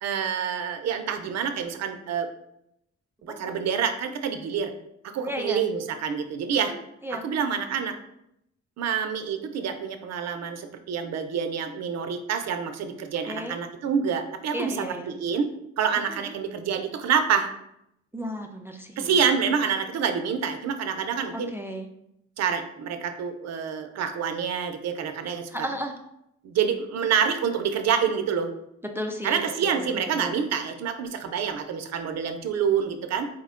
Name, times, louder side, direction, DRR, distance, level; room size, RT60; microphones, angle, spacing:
voice 1, 0.0-2.3 3.2-4.7 5.0-6.7 7.1-8.0 8.8-15.5 15.8-17.5 19.0-21.5 22.4-25.7 26.4-28.5 29.2-33.3, right 7 dB, 60° right, 7 dB, 0.5 m, -27 dB
voice 2, 5.2-5.6 6.7-7.2 13.3-13.6 14.5-15.1 16.3-16.4 18.1-19.2 21.3-21.9 25.5-25.9 28.9-30.3, equal, 10° right, 4 dB, 0.3 m, -34 dB
4.3 x 2.1 x 3.6 m, 0.79 s
cardioid pair, 90°, 30 cm